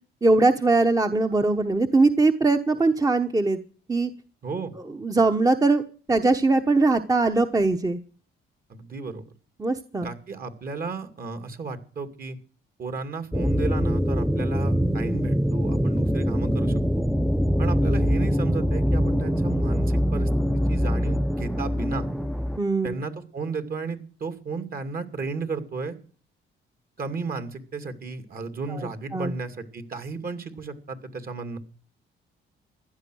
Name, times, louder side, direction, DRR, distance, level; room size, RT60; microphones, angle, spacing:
voice 1, 0.2-3.6 3.9-4.1 5.0-5.8 6.1-8.0 9.6-10.1 22.6-23.0 28.8-29.3, right 3 dB, 20° right, 6 dB, 1.0 m, -21 dB
voice 2, 8.7-9.2 10.0-12.4 12.8-17.1 17.6-22.0 22.8-26.0 27.0-31.6, right 4 dB, 45° right, 9 dB, 2.4 m, -34 dB
sound 1, 13.3-22.6, equal, ahead, 0.6 m, -23 dB
16.0 x 11.0 x 6.3 m, 0.43 s
cardioid pair, 90°, 20 cm